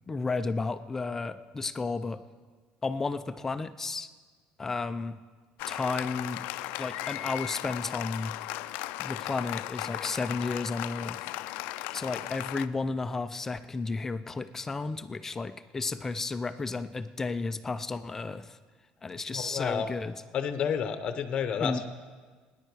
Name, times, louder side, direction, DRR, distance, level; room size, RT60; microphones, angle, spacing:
voice 1, 0.1-2.2 2.8-4.1 4.6-5.2 5.7-6.4 6.8-8.3 9.0-11.2 11.7-18.6 19.0-20.2 21.6-21.8, left 3 dB, 15° left, 12 dB, 0.4 m, -33 dB
Applause, 5.6-12.7, left 16 dB, 80° left, 0.4 m, -36 dB
voice 2, 19.3-19.9 20.3-21.9, left 7 dB, 35° left, 9 dB, 0.8 m, -30 dB
18.5 x 10.0 x 4.8 m, 1.5 s
cardioid pair, 175°, 3 cm